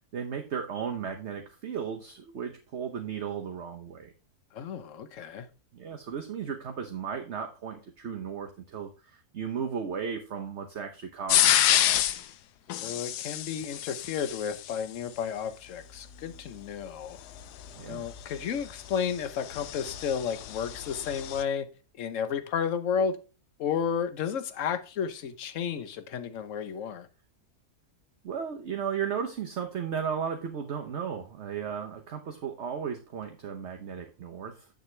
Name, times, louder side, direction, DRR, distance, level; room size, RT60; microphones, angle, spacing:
voice 1, 0.1-4.1 5.7-11.9 17.7-18.1 28.2-34.7, right 7 dB, 50° right, 1.1 m, -35 dB
voice 2, 4.5-5.5 12.8-17.2 17.9-21.7 22.0-23.2 23.6-27.1, left 7 dB, 60° left, 1.1 m, -32 dB
sound 1, 11.3-12.2 12.7-14.8 17.4-21.4, left 12 dB, 85° left, 1.2 m, -28 dB
7.9 x 7.1 x 3.2 m
omnidirectional pair, 1.7 m